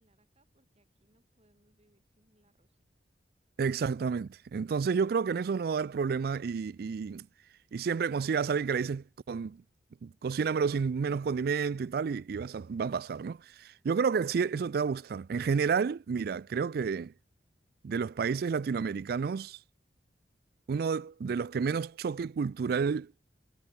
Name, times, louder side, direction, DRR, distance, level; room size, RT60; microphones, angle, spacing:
voice 1, 0.0-2.8, right 1 dB, 35° right, 4.7 m, -71 dB
voice 2, 3.6-7.3 7.7-9.6 10.0-17.1 17.8-19.6 20.7-23.1, right 5 dB, 55° right, 0.3 m, -30 dB
head